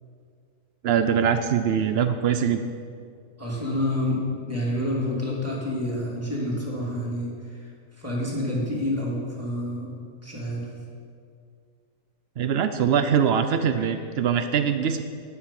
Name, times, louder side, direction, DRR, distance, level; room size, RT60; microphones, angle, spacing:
voice 1, 0.8-2.6 12.4-15.0, right 7 dB, 80° right, 9 dB, 0.5 m, -22 dB
voice 2, 3.4-7.6 8.0-9.9 10.2-10.7 13.8-13.9, left 1 dB, 10° right, -6 dB, 3.3 m, -28 dB
13.5 x 10.0 x 5.8 m, 2.2 s
omnidirectional pair, 1.8 m